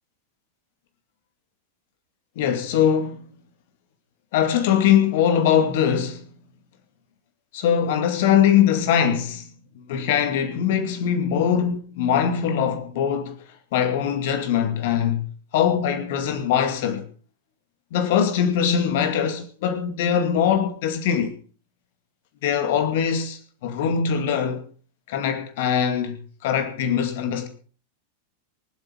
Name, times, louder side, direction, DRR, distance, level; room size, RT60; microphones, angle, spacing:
voice 1, 2.4-3.3 4.3-6.2 7.5-9.5 9.8-13.4 13.7-15.3 15.5-17.1 17.9-21.4 22.4-24.6 25.1-27.5, left 8 dB, 50° left, 2.3 m, -22 dB
24.0 x 8.4 x 4.8 m
figure-of-eight pair, 90°, 0 cm